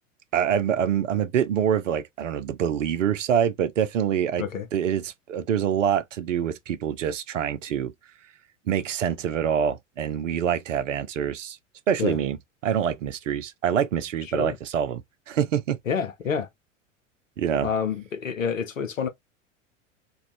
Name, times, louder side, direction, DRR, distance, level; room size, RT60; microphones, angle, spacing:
voice 1, 0.3-4.4 4.7-7.9 8.7-11.6 11.9-12.4 12.6-15.0 15.3-15.8 17.4-17.7, right 9 dB, 70° right, 0.6 m, -25 dB
voice 2, 15.9-16.5 17.6-19.1, left 6 dB, 80° left, 0.7 m, -28 dB
2.5 x 2.3 x 3.0 m
figure-of-eight pair, 85°, 38 cm